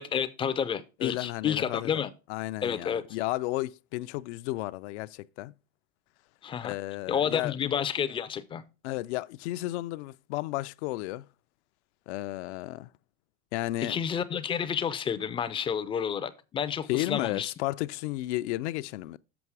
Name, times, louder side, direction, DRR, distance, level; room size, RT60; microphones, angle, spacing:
voice 1, 0.0-2.1 2.6-3.0 6.4-6.7 7.1-8.6 13.8-17.5, left 8 dB, 15° left, 0.3 m, -30 dB
voice 2, 1.0-1.9 2.3-5.5 6.6-7.5 8.8-11.3 12.1-12.9 13.5-14.0 16.9-19.2, left 18 dB, 80° left, 0.5 m, -33 dB
7.0 x 5.3 x 4.7 m
supercardioid pair, 150°, 33 cm